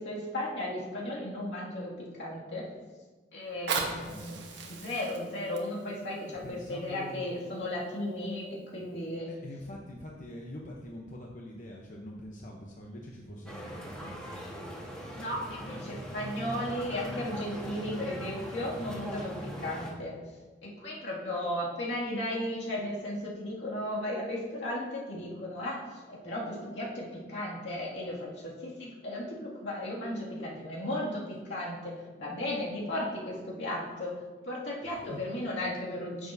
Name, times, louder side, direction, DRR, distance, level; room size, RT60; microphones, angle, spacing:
voice 1, 0.0-2.7 3.3-4.4 4.7-9.3 15.1-20.2 20.6-31.9 32.2-36.3, left 1 dB, 80° left, -5 dB, 2.3 m, -35 dB
Fire, 3.4-8.4 9.0-9.1, right 4 dB, 85° right, 1.2 m, -39 dB
voice 2, 3.8-4.4 6.3-7.3 9.3-14.7 15.5-15.7 34.9-35.2, left 1 dB, 45° left, -1 dB, 0.9 m, -45 dB
sound 1, 13.5-19.9, equal, 5° left, 1.4 m, -41 dB
9.9 x 7.2 x 2.7 m, 1.3 s
head